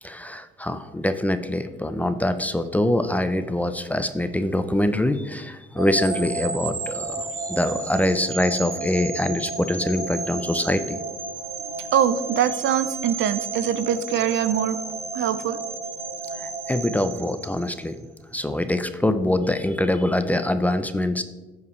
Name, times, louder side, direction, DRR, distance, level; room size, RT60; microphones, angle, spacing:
voice 1, 0.0-11.0 16.4-18.1 18.3-21.2, left 1 dB, 5° left, 10 dB, 0.5 m, -24 dB
sound 1, 5.8-17.9, right 4 dB, 50° right, 2.4 m, -32 dB
voice 2, 11.9-14.8 15.1-15.6, right 9 dB, 70° right, 13 dB, 0.6 m, -23 dB
14.0 x 4.8 x 3.2 m, 1.2 s
cardioid pair, 90°, 20 cm